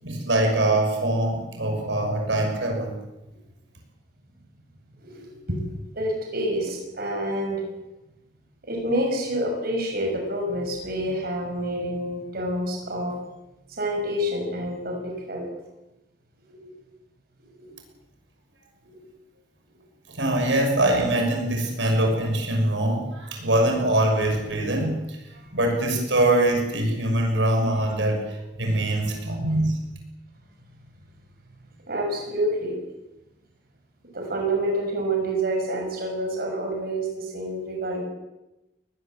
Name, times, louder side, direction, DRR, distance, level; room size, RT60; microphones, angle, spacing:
voice 1, 0.0-3.0 20.1-25.0 25.5-29.7, right 1 dB, 90° right, 3 dB, 6.2 m, -23 dB
voice 2, 5.0-5.6 5.9-7.6 8.6-13.1 13.8-15.5 16.5-16.6 17.6-17.8 18.8-19.0 28.6-29.0 29.4-29.6 31.9-32.8 34.1-38.0, right 1 dB, 55° right, 1 dB, 6.1 m, -28 dB
22.0 x 20.0 x 7.7 m, 0.98 s
head